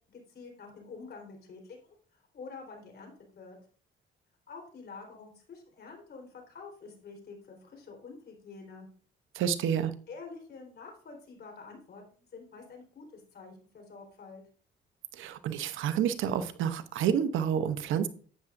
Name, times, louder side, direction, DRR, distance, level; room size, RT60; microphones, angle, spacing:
voice 1, 0.1-3.6 4.5-8.9 10.1-14.4, left 4 dB, 55° left, 3 dB, 4.0 m, -48 dB
voice 2, 9.3-9.9 15.2-18.1, right 8 dB, 80° right, 11 dB, 0.9 m, -29 dB
11.5 x 8.9 x 2.6 m, 0.44 s
cardioid pair, 90°, 20 cm